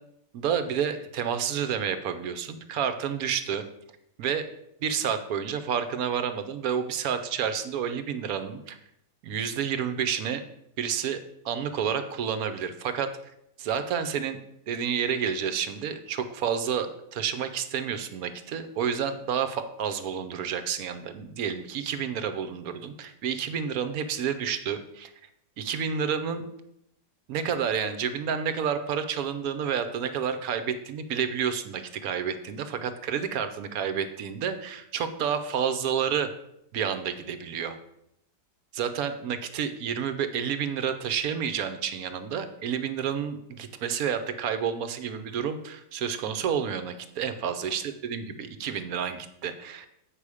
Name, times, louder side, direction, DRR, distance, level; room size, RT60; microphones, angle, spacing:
voice 1, 0.3-3.6 4.2-4.4 4.8-8.8 9.2-10.4 10.8-13.1 13.6-14.4 14.7-25.1 25.6-26.5 27.3-36.3 36.7-37.8 38.7-49.9, right 7 dB, 65° right, 9 dB, 1.1 m, -30 dB
8.4 x 5.5 x 4.8 m, 0.79 s
omnidirectional pair, 1.8 m